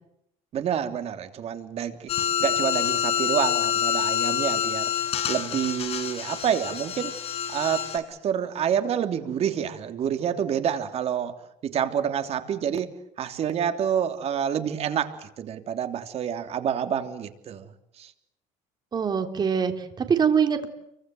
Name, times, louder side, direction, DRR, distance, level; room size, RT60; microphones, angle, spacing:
voice 1, 0.5-2.1 2.4-7.2 7.5-17.7 18.0-18.1, right 8 dB, 45° right, 7 dB, 3.2 m, -28 dB
sound 1, 2.1-8.0, left 9 dB, 45° left, 6.3 m, -27 dB
voice 2, 18.9-20.7, right 7 dB, 30° right, 6 dB, 3.6 m, -23 dB
30.0 x 24.5 x 7.8 m, 0.77 s
cardioid pair, 140°, 15 cm